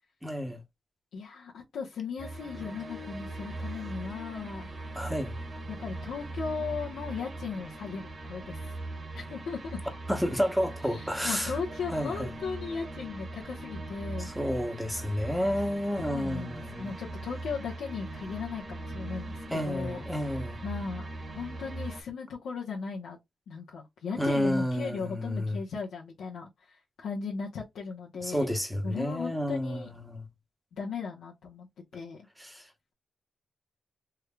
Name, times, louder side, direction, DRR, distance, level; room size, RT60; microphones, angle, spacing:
voice 1, 0.2-0.6 5.0-5.3 10.1-11.5 11.9-12.3 14.2-16.9 19.5-20.6 24.2-25.6 28.2-30.3 32.4-32.6, equal, ahead, 0.9 m, -30 dB
voice 2, 1.1-4.7 5.7-8.6 9.1-9.8 10.8-14.3 16.0-20.3 20.6-23.2 23.5-28.5 28.8-29.9 30.8-31.7 31.9-32.2, left 5 dB, 90° left, 1.0 m, -37 dB
sound 1, 2.2-22.0, right 2 dB, 35° right, 1.3 m, -40 dB
3.5 x 3.4 x 2.3 m
cardioid pair, 105°, 0 cm